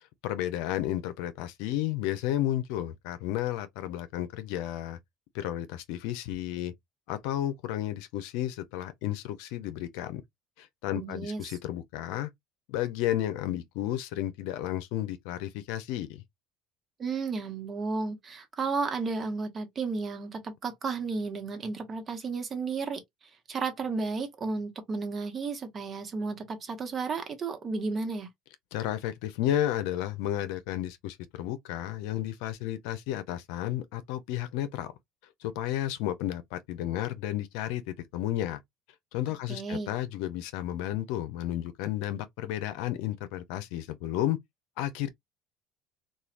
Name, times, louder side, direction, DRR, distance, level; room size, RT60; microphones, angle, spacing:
voice 1, 0.2-5.0 5.3-6.7 7.1-10.2 10.6-12.3 12.7-16.2 28.7-34.9 35.4-38.6 39.1-44.4 44.8-45.1, left 13 dB, 80° left, 0.5 m, -32 dB
voice 2, 10.9-11.6 17.0-23.0 23.5-28.3 39.5-39.9, right 4 dB, 35° right, 1.0 m, -33 dB
3.1 x 2.3 x 2.4 m
supercardioid pair, 100°, 0 cm